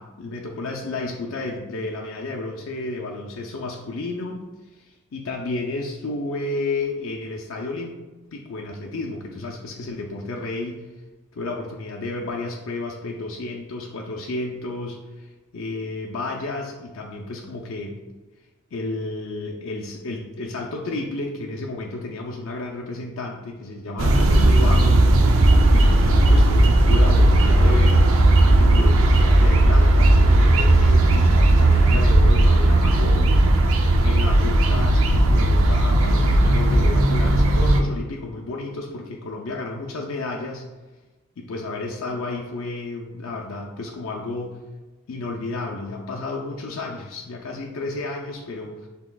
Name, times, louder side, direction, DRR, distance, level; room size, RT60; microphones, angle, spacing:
voice 1, 0.0-4.5 4.8-7.9 8.2-10.8 11.3-18.0 18.7-25.3 25.7-28.1 28.6-33.4 34.0-40.6 41.4-44.6 45.1-48.9, left 2 dB, 80° left, -1 dB, 0.5 m, -32 dB
sound 1, 24.0-37.8, right 1 dB, 80° right, 0.5 m, -16 dB
5.9 x 3.5 x 2.3 m, 1.2 s
head